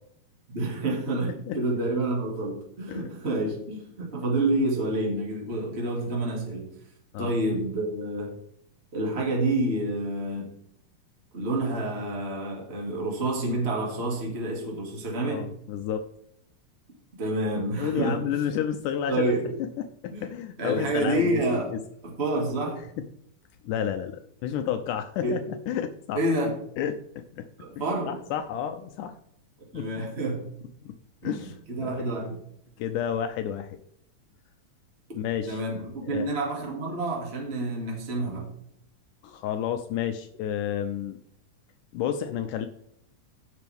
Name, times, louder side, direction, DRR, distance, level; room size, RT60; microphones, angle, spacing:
voice 1, 0.5-6.7 7.2-8.3 8.9-10.5 11.3-15.5 17.2-18.4 19.1-19.5 20.1-20.3 20.6-21.7 22.0-22.8 25.2-25.5 26.1-26.6 27.6-28.1 29.7-30.5 31.2-31.3 31.7-32.4 35.1-35.2 35.5-38.5, right 2 dB, 20° right, -1 dB, 2.1 m, -28 dB
voice 2, 15.2-16.0 17.8-19.3 20.0-21.4 21.7-21.8 23.6-25.4 25.7-26.2 26.8-27.5 28.1-29.2 29.7-29.9 30.8-30.9 31.2-31.5 31.8-32.0 32.8-33.8 35.1-35.6 36.1-36.3 39.2-41.2 41.9-42.7, left 9 dB, 80° left, 7 dB, 2.1 m, -30 dB
15.5 x 6.0 x 3.5 m, 0.70 s
omnidirectional pair, 3.8 m